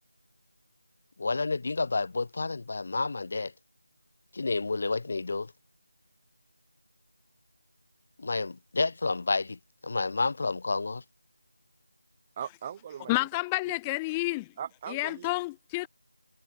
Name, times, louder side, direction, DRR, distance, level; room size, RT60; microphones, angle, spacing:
voice 1, 1.2-3.5 4.3-5.5 8.2-11.0, left 3 dB, 30° left, 2.7 m, -30 dB
voice 2, 12.4-13.3 14.6-15.3, right 9 dB, 10° right, 4.4 m, -39 dB
voice 3, 13.1-14.5 14.9-15.9, left 23 dB, 5° left, 3.5 m, -30 dB
figure-of-eight pair, 180°, 0 cm